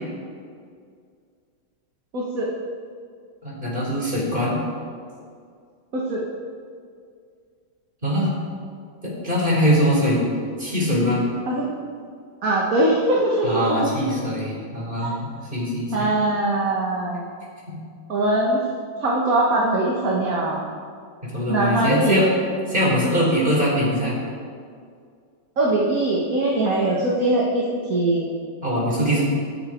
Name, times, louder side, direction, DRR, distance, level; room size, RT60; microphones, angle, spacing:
voice 1, 2.1-2.5 5.9-6.2 11.5-11.7 12.4-13.6 15.0-15.2 15.9-17.3 18.1-18.6 19.0-20.6 21.5-22.3 25.6-28.2, right 2 dB, 45° right, -3 dB, 2.1 m, -21 dB
voice 2, 3.4-4.5 8.0-8.3 9.0-10.2 10.6-11.2 13.4-16.1 17.7-17.8 21.3-22.3 22.7-24.2 28.6-29.2, equal, 25° right, -5 dB, 5.1 m, -22 dB
28.0 x 9.5 x 4.6 m, 2.2 s
omnidirectional pair, 2.2 m